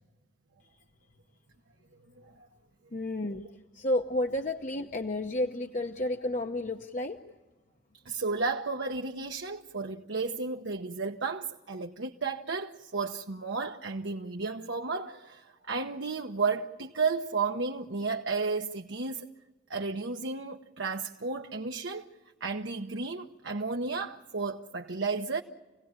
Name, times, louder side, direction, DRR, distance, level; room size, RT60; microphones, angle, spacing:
voice 1, 2.9-3.4 3.7-7.2, left 1 dB, 40° left, 0.9 m, -31 dB
voice 2, 8.0-19.3 19.7-22.1 22.4-25.4, right 4 dB, 70° right, 1.1 m, -33 dB
28.0 x 17.5 x 8.9 m
head